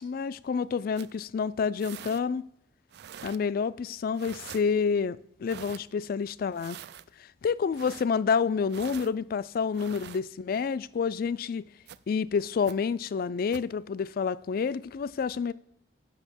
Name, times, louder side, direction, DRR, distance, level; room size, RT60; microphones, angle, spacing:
voice 1, 0.0-2.5 3.2-6.8 7.4-11.6 12.1-15.5, left 6 dB, 55° left, 0.3 m, -28 dB
sound 1, 1.0-1.2 1.8-2.2 2.9-3.4 4.1-4.6 5.5-5.8 6.5-7.0 7.7-8.1 8.7-9.1 9.7-10.2 11.9-12.0 12.7-12.8 13.5-13.7, right 9 dB, 65° right, 0.3 m, -44 dB
8.3 x 6.1 x 6.9 m
head